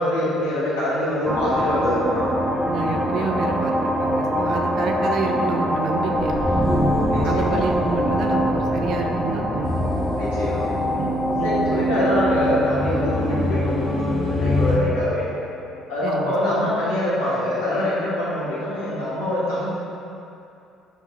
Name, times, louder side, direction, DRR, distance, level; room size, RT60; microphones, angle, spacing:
voice 1, 0.0-2.3 3.2-3.5 7.1-7.5 10.1-10.7 11.4-15.3 15.9-19.7, left 1 dB, 80° left, -9 dB, 1.3 m, -24 dB
sound 1, 1.2-15.4, equal, 10° right, 0.6 m, -24 dB
voice 2, 2.6-3.7 4.0-6.7 7.2-9.9 11.0-12.2 16.0-16.3 16.6-16.7, right 5 dB, 60° right, 3 dB, 0.4 m, -29 dB
sound 2, 9.6-14.8, left 3 dB, 35° left, 0.6 m, -26 dB
5.4 x 3.1 x 3.0 m, 2.7 s
hypercardioid pair, 60°, 0 cm